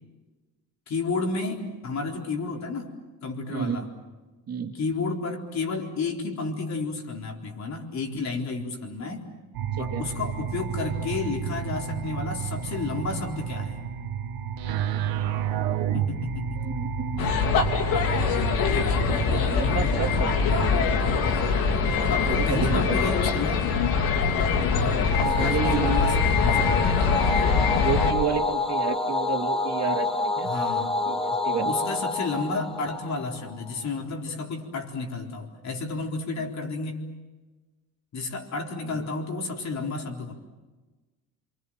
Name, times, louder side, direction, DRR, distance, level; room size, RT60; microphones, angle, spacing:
voice 1, 0.9-2.9 3.2-3.9 4.7-9.3 9.8-13.8 15.9-16.6 17.2-17.3 21.3-21.7 22.1-23.7 24.7-27.0 30.4-31.0 31.7-37.0 38.1-40.3, left 3 dB, 50° left, 1 dB, 4.2 m, -31 dB
voice 2, 3.5-3.9 4.5-4.8 9.8-10.0 16.5-17.3 19.1-20.3 22.2-23.1 25.2-26.1 27.7-30.5 31.0-31.7 38.9-39.0, right 7 dB, 45° right, 4 dB, 2.7 m, -31 dB
sound 1, 9.5-20.8, right 7 dB, 85° right, 1.8 m, -31 dB
sound 2, 17.2-28.1, left 5 dB, 80° left, 3.1 m, -23 dB
sound 3, 25.1-33.7, left 2 dB, ahead, 2.7 m, -28 dB
28.0 x 24.5 x 7.7 m, 1.2 s
cardioid pair, 115°, 35 cm